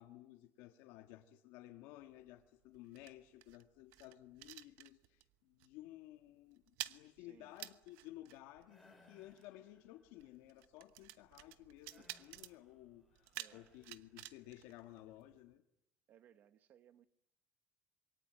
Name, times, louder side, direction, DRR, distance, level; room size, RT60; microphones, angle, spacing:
voice 1, 0.0-15.6, left 15 dB, 85° left, 1.7 m, -56 dB
sound 1, 2.0-5.3 5.6-5.9 6.1-15.5, right 17 dB, 85° right, 1.1 m, -53 dB
voice 2, 7.2-7.6 13.4-13.7 16.1-17.1, right 10 dB, 40° right, 1.3 m, -65 dB
sound 2, 8.7-10.2 11.9-14.6, left 2 dB, ahead, 4.4 m, -69 dB
26.5 x 23.0 x 9.2 m
cardioid pair, 175°, 4 cm